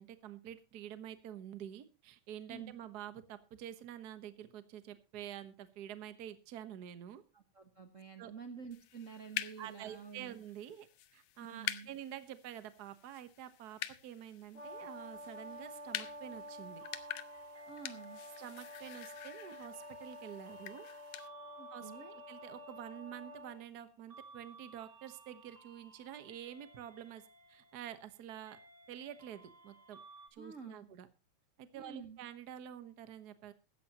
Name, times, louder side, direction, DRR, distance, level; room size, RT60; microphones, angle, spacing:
voice 1, 0.0-7.2 8.2-8.3 9.6-10.9 11.1-16.8 18.4-20.9 21.7-27.2 27.5-28.6 28.9-30.0 30.3-31.1 31.6-33.5, right 10 dB, 55° right, 11 dB, 1.1 m, -48 dB
voice 2, 7.3-10.3 11.4-11.9 17.7-18.2 21.6-22.1 30.4-30.9 31.7-32.2, right 6 dB, 85° right, 6 dB, 0.6 m, -49 dB
sound 1, 8.7-21.3, left 14 dB, 80° left, 2.2 m, -47 dB
Brass instrument, 14.5-23.6, equal, 20° left, 4.7 m, -50 dB
sound 2, 16.8-30.3, right 3 dB, 25° right, 2.2 m, -59 dB
16.5 x 14.0 x 3.0 m, 0.29 s
omnidirectional pair, 3.4 m